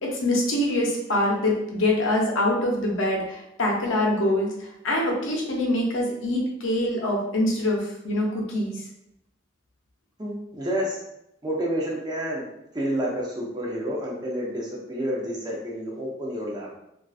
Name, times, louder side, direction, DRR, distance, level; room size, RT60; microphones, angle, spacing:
voice 1, 0.0-8.8, left 1 dB, 85° left, -1 dB, 0.6 m, -24 dB
voice 2, 10.2-11.0 11.4-12.5 12.7-16.8, equal, 20° right, -3 dB, 0.5 m, -29 dB
2.4 x 2.3 x 2.4 m, 0.80 s
head